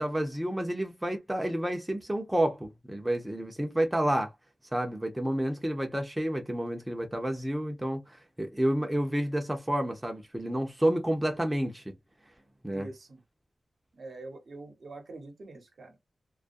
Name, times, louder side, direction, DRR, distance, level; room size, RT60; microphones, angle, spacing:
voice 1, 0.0-4.3 4.7-11.9 12.6-12.9, right 1 dB, 10° right, 0.6 m, -30 dB
voice 2, 12.7-13.2 13.9-16.0, right 2 dB, 60° right, 0.9 m, -45 dB
2.3 x 2.1 x 2.5 m
wide cardioid pair, 105°, 0 cm